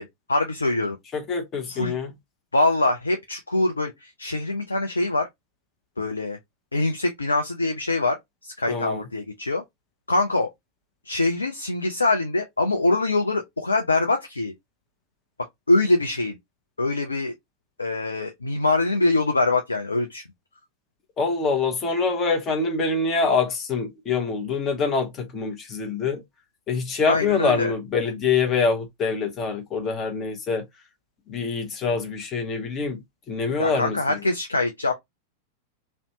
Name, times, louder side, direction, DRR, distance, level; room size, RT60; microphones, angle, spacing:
voice 1, 0.0-1.0 1.7-1.9 2.5-5.3 6.0-6.4 6.7-8.2 8.4-9.6 10.1-10.5 11.1-14.5 15.7-16.4 16.8-17.3 17.8-20.2 27.1-27.7 33.6-34.9, left 2 dB, 80° left, 0.4 m, -24 dB
voice 2, 1.1-2.1 8.7-9.0 21.2-26.2 26.7-30.7 31.3-34.2, left 4 dB, 30° left, 0.8 m, -25 dB
2.6 x 2.1 x 2.7 m
figure-of-eight pair, 90°, 0 cm